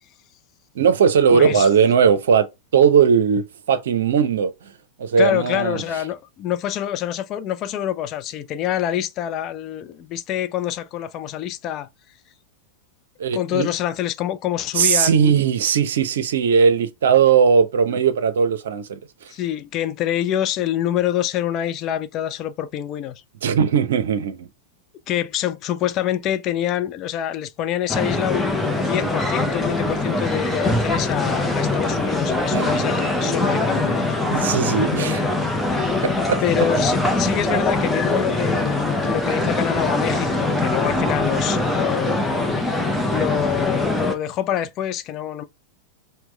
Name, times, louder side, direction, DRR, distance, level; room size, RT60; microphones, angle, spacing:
voice 1, 0.8-2.5 2.7-4.5 5.0-5.8 13.2-13.7 14.7-19.0 23.4-24.5 32.5-32.7 34.3-35.2 36.3-36.4, right 7 dB, 60° right, 0.6 m, -18 dB
voice 2, 1.3-1.7 5.2-11.9 13.3-15.4 19.3-23.2 25.1-34.2 36.4-42.7 43.1-45.4, left 11 dB, 35° left, 0.4 m, -26 dB
sound 1, 27.9-44.1, left 2 dB, 5° left, 0.8 m, -22 dB
5.9 x 2.2 x 3.2 m
figure-of-eight pair, 90°, 0 cm